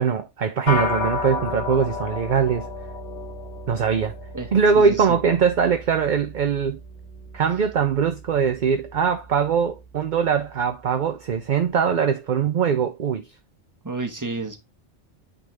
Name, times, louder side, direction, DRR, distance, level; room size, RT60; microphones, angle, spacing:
voice 1, 0.0-2.7 3.7-4.1 4.5-6.8 7.3-13.2, right 6 dB, 50° right, 0.7 m, -21 dB
sound 1, 0.7-10.2, left 3 dB, 75° left, 2.7 m, -33 dB
voice 2, 4.3-5.1 13.8-14.6, right 3 dB, 15° right, 1.2 m, -31 dB
9.0 x 4.0 x 3.3 m
omnidirectional pair, 1.2 m